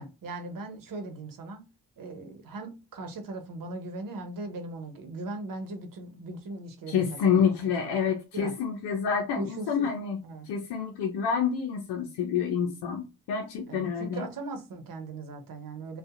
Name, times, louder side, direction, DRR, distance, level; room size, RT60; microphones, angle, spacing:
voice 1, 0.0-1.6 2.0-7.5 7.8-8.0 8.3-8.5 9.4-9.9 10.2-10.5 13.7-16.0, right 2 dB, 55° right, 1.0 m, -39 dB
voice 2, 6.9-10.2 10.5-14.2, left 7 dB, 75° left, 0.7 m, -28 dB
2.7 x 2.4 x 2.4 m
cardioid pair, 70°, 40 cm